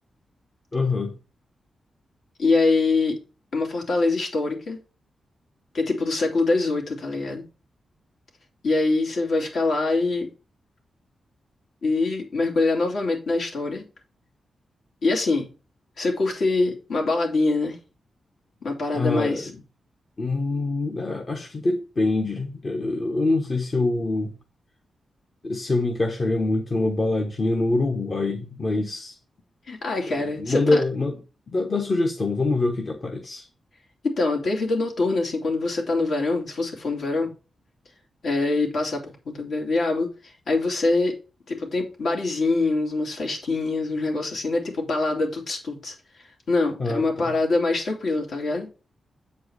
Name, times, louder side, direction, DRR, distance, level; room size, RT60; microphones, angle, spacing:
voice 1, 0.7-1.2 18.9-19.5 20.2-24.3 25.4-29.2 30.1-31.2 31.5-33.4 46.8-47.3, left 2 dB, 35° left, 1.1 m, -25 dB
voice 2, 2.4-3.2 3.5-4.8 5.7-7.4 8.6-10.3 11.8-13.8 15.0-15.5 16.0-17.8 18.6-19.5 29.7-30.8 34.0-37.3 38.2-40.1 40.5-41.2 41.5-45.9 46.5-48.7, left 3 dB, 65° left, 2.9 m, -24 dB
8.0 x 4.7 x 4.7 m
wide cardioid pair, 140°, 0 cm